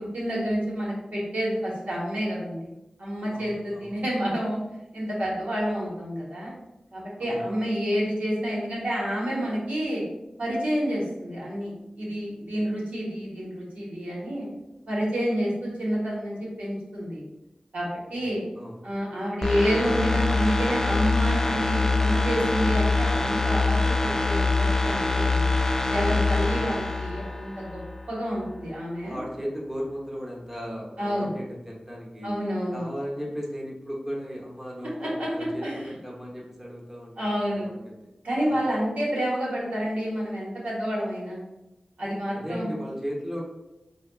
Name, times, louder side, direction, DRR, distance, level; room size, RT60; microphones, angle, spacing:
voice 1, 0.0-2.7 3.0-4.6 4.9-6.5 6.9-10.0 10.4-14.5 14.9-17.2 17.7-18.4 18.8-25.5 25.9-27.8 28.1-29.2 31.0-31.3 32.2-32.8 35.0-35.3 35.6-35.8 37.2-37.7 38.2-41.4 42.0-42.7, equal, 90° right, -5 dB, 1.2 m, -29 dB
voice 2, 3.3-4.0 7.2-7.4 18.1-18.8 26.3-26.7 29.0-32.3 32.7-38.0 38.4-38.7 42.3-43.4, equal, 10° right, -3 dB, 0.9 m, -36 dB
sound 1, 19.4-28.1 28.4-28.5, left 3 dB, 20° left, 0.3 m, -24 dB
4.9 x 2.3 x 2.3 m, 0.97 s
wide cardioid pair, 75°, 2 cm